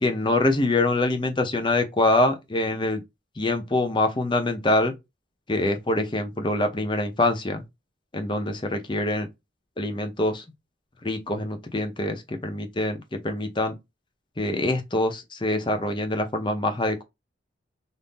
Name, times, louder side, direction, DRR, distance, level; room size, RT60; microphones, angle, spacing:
voice 1, 0.0-3.0 3.4-4.9 5.5-7.6 8.1-9.3 9.8-10.4 11.0-13.7 14.4-17.0, left 2 dB, 25° left, 0.6 m, -25 dB
3.6 x 2.6 x 2.5 m
head